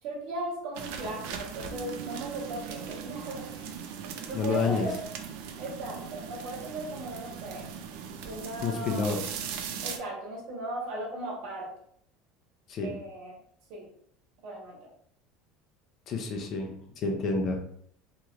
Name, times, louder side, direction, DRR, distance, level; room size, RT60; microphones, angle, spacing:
voice 1, 0.0-5.0 5.6-7.7 8.2-9.2 9.8-11.7 12.8-13.3 13.7-13.9 14.4-14.9, right 1 dB, 55° right, -1 dB, 1.0 m, -37 dB
sound 1, 0.7-10.0, right 7 dB, 70° right, 0.4 m, -40 dB
Piano, 1.7-7.1, right 12 dB, 20° right, 1.1 m, -48 dB
voice 2, 4.3-4.9 8.6-9.3 12.7-12.9 16.1-16.7 17.0-17.6, left 4 dB, 35° left, 2 dB, 0.5 m, -29 dB
3.1 x 2.9 x 2.4 m, 0.64 s
cardioid pair, 175°, 0 cm